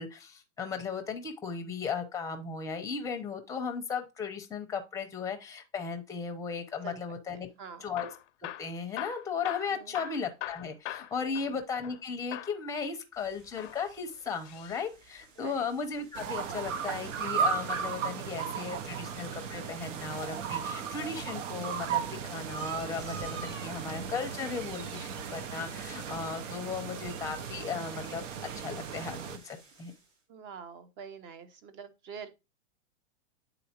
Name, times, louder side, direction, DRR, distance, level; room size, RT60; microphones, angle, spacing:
voice 1, 0.0-7.5 7.8-8.1 8.4-28.2 28.5-29.9, left 5 dB, 10° left, 0.7 m, -36 dB
voice 2, 6.8-7.9 9.7-9.9 11.2-11.6 15.4-15.7 30.3-32.3, right 6 dB, 30° right, 0.7 m, -46 dB
Hammer / Drill, 7.8-12.0 12.3-12.6 13.4-14.9 16.6-17.9 19.6-20.0 20.7-21.6 22.2-22.5 22.8-22.9 23.5-23.6, left 14 dB, 70° left, 0.5 m, -43 dB
sound 1, 13.1-30.1, right 5 dB, 55° right, 3.0 m, -51 dB
sound 2, 16.1-29.4, right 7 dB, 75° right, 0.9 m, -36 dB
9.0 x 3.9 x 2.9 m
supercardioid pair, 140°, 38 cm